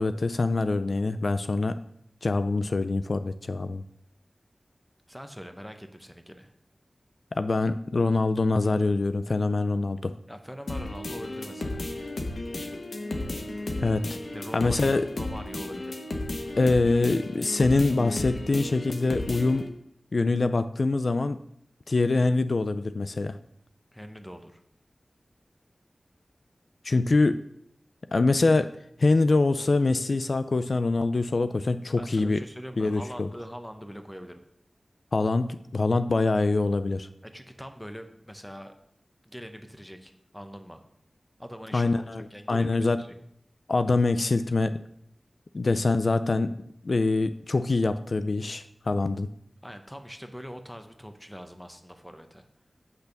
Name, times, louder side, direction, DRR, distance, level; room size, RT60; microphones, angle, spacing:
voice 1, 0.0-1.8 2.2-3.8 7.3-10.1 13.8-14.0 14.5-15.0 16.6-19.7 20.1-21.4 21.9-23.4 26.8-27.4 28.1-28.7 29.0-32.4 32.8-33.3 35.1-37.1 41.7-43.0 43.7-44.8 45.5-46.6 46.8-49.3, left 3 dB, 65° left, 11 dB, 0.3 m, -24 dB
voice 2, 5.1-6.5 10.3-11.9 14.3-16.0 23.9-24.6 32.0-34.4 37.2-38.7 39.2-40.8 41.4-42.7 43.0-43.2 49.6-52.4, equal, 5° left, 7 dB, 0.8 m, -42 dB
sound 1, 10.7-19.7, left 2 dB, 80° left, 1.0 m, -34 dB
8.2 x 3.4 x 6.6 m, 0.73 s
wide cardioid pair, 60°, 0 cm